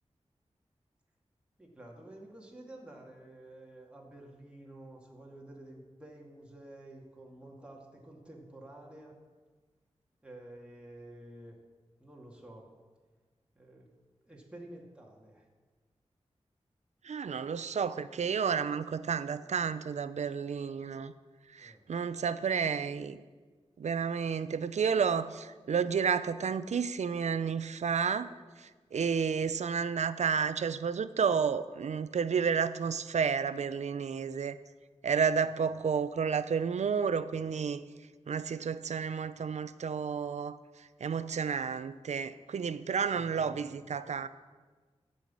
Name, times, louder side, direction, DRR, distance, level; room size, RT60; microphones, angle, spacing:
voice 1, 1.6-9.2 10.2-11.6 12.0-12.8 13.5-13.9 14.2-15.5 21.6-21.9 35.7-35.8 43.1-43.8, right 1 dB, 10° right, -2 dB, 2.2 m, -50 dB
voice 2, 17.0-21.1 21.5-23.2 23.8-28.3 28.6-34.6 35.0-37.8 38.3-44.3, right 6 dB, 85° right, 14 dB, 0.5 m, -31 dB
12.5 x 5.7 x 8.5 m, 1.4 s
wide cardioid pair, 80°, 11 cm